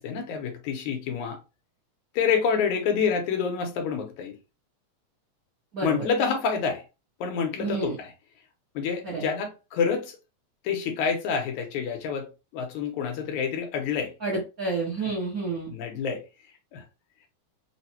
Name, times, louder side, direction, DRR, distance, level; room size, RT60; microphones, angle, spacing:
voice 1, 0.0-1.4 2.1-4.4 5.8-6.8 7.2-8.1 8.8-10.2 10.6-12.3 12.5-14.1 15.0-15.1 15.7-16.2 16.7-16.8, left 6 dB, 80° left, 2.1 m, -27 dB
voice 2, 5.7-6.1 7.6-7.9 9.0-9.2 14.2-15.7, right 3 dB, 80° right, 0.8 m, -29 dB
4.9 x 2.2 x 2.8 m
omnidirectional pair, 3.5 m